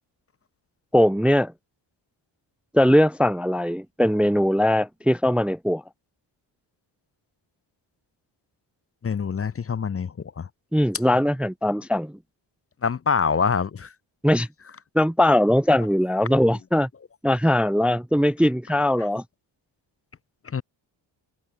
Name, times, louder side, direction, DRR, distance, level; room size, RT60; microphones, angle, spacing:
voice 1, 0.9-1.5 2.7-5.8 10.7-12.1 14.2-14.5 14.9-16.9 17.2-19.2, left 1 dB, ahead, 0.6 m, -20 dB
voice 2, 9.0-10.5 12.8-13.9 16.3-16.4 19.0-19.1 20.4-20.6, left 6 dB, 30° left, 0.8 m, -25 dB
cardioid pair, 130°, 48 cm